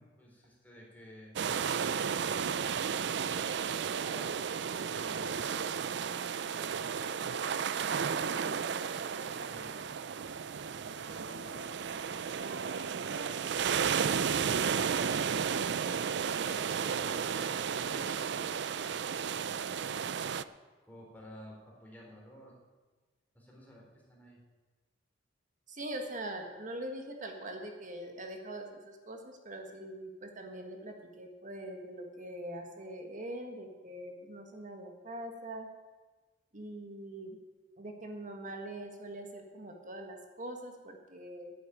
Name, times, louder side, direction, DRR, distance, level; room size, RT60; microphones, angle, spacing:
voice 1, 0.0-1.3 2.0-5.2 7.0-9.8 10.7-12.5 12.9-13.9 16.5-18.4 18.7-20.5 20.8-22.6 23.3-24.4, equal, 10° left, -3 dB, 3.6 m, -54 dB
sound 1, 1.4-20.4, right 7 dB, 65° right, 0.4 m, -33 dB
sound 2, 4.8-15.7, right 2 dB, 85° right, 1.0 m, -49 dB
voice 2, 25.7-35.7 36.5-37.4 37.8-41.5, right 1 dB, 45° right, 3 dB, 1.7 m, -43 dB
10.0 x 9.6 x 9.1 m, 1.3 s
head